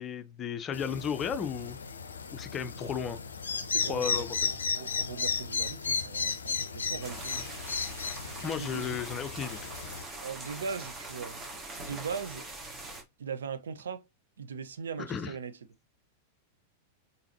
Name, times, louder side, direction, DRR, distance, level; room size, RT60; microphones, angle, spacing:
voice 1, 0.0-1.8 2.3-3.2 3.8-4.4 8.4-9.7 15.0-15.3, left 7 dB, 25° left, 0.6 m, -34 dB
sound 1, 0.7-10.0, left 5 dB, 75° left, 0.5 m, -34 dB
voice 2, 3.6-7.5 8.6-8.9 10.2-11.4 11.8-12.5 13.2-14.1 14.4-15.6, right 6 dB, 70° right, 0.5 m, -39 dB
sound 2, 7.0-13.0, right 2 dB, 20° right, 1.5 m, -43 dB
3.9 x 3.9 x 2.9 m
figure-of-eight pair, 90°, 0 cm